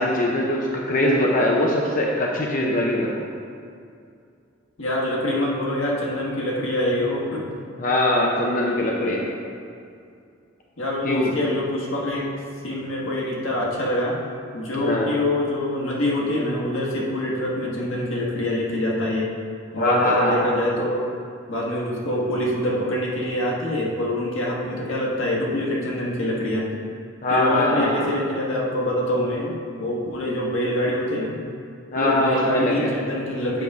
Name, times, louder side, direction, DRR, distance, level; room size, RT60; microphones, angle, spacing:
voice 1, 0.0-3.1 7.8-9.3 11.0-11.3 14.8-15.1 19.8-20.4 27.2-28.1 31.9-32.9, left 1 dB, 40° left, -2 dB, 0.7 m, -22 dB
voice 2, 4.8-7.4 10.8-12.3 12.6-14.2 14.5-19.3 19.7-21.0 21.5-26.7 27.3-31.4 31.9-33.6, left 1 dB, 85° left, -4 dB, 1.4 m, -25 dB
8.2 x 5.3 x 3.5 m, 2.4 s
head